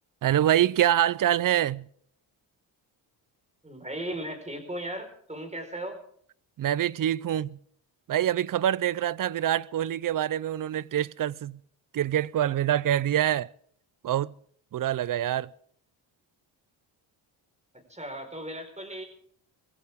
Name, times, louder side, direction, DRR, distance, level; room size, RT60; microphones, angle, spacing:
voice 1, 0.2-1.9 6.6-7.6 8.1-11.6 11.9-13.5 14.0-14.3 14.7-15.5, right 11 dB, 45° right, 0.5 m, -25 dB
voice 2, 3.6-6.0 17.9-19.0, right 1 dB, 15° right, 4.6 m, -36 dB
21.0 x 16.0 x 3.6 m
cardioid pair, 90°, 46 cm